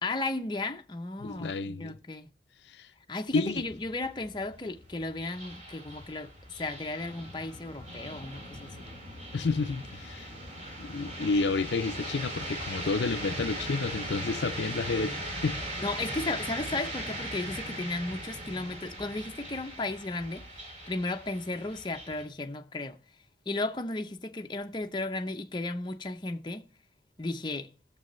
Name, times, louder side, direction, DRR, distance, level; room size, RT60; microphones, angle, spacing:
voice 1, 0.0-2.3 3.1-8.9 15.8-23.0 23.5-26.7 27.2-27.7, left 2 dB, 25° left, 0.6 m, -35 dB
voice 2, 1.2-2.0 2.8-2.9 3.3-3.6 9.3-10.3 10.8-15.6, left 3 dB, 80° left, 0.6 m, -30 dB
sound 1, 3.3-22.3, right 1 dB, 40° right, 2.5 m, -39 dB
16.5 x 6.9 x 3.1 m
head